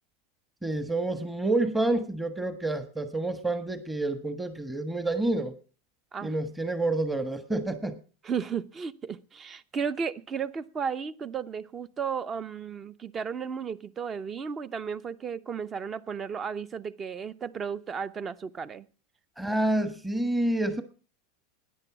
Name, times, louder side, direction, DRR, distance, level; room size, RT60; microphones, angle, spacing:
voice 1, 0.6-5.5 6.2-7.9 19.4-20.8, right 2 dB, 5° right, 9 dB, 1.4 m, -28 dB
voice 2, 8.2-18.9, right 6 dB, 25° right, 17 dB, 0.8 m, -34 dB
13.5 x 10.0 x 6.0 m, 0.39 s
supercardioid pair, 130°, 0 cm